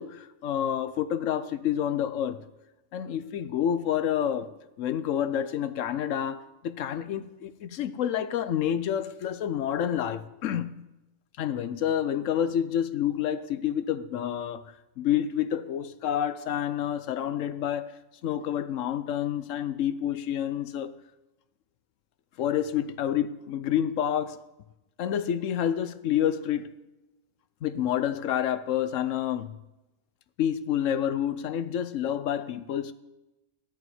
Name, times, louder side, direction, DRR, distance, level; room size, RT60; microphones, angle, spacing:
voice 1, 0.0-2.4 2.9-4.5 4.8-10.7 11.4-14.7 15.0-17.9 18.2-20.9 22.4-24.4 25.0-26.7 27.6-29.5 30.4-32.9, left 10 dB, 75° left, 1.0 m, -28 dB
13.0 x 5.6 x 9.3 m
omnidirectional pair, 1.4 m